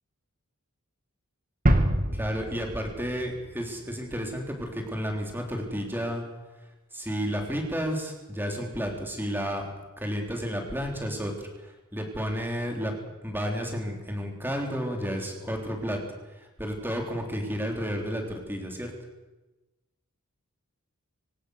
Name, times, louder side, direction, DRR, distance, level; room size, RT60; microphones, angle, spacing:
sound 1, 1.7-4.3, right 1 dB, 40° right, 2.2 m, -27 dB
voice 1, 2.1-6.2 6.6-9.7 10.0-12.9 13.2-18.9, equal, 10° right, 2 dB, 3.9 m, -32 dB
25.0 x 18.0 x 6.7 m, 1.1 s
head